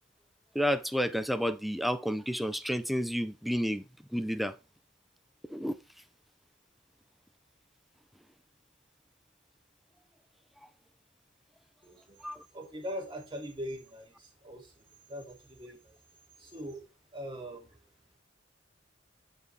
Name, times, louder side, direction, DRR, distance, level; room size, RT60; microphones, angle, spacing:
voice 1, 0.5-3.8 4.1-4.5 5.5-5.8 12.2-12.4, equal, ahead, 0.5 m, -30 dB
voice 2, 11.8-12.2 12.5-16.0 16.4-16.8 17.1-17.7, equal, 25° right, 2.6 m, -42 dB
9.8 x 5.3 x 3.3 m
head